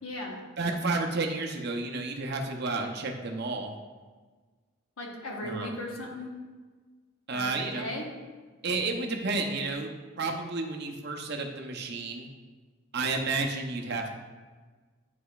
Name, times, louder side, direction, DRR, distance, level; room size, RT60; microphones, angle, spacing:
voice 1, 0.0-0.4 5.0-6.3 7.3-8.1, left 1 dB, 85° left, 0 dB, 1.2 m, -37 dB
voice 2, 0.6-3.7 5.4-5.7 7.3-7.9 8.6-9.9 10.2-12.3 12.9-14.1, right 3 dB, 55° right, 2 dB, 0.7 m, -31 dB
9.0 x 4.9 x 2.4 m, 1.4 s
head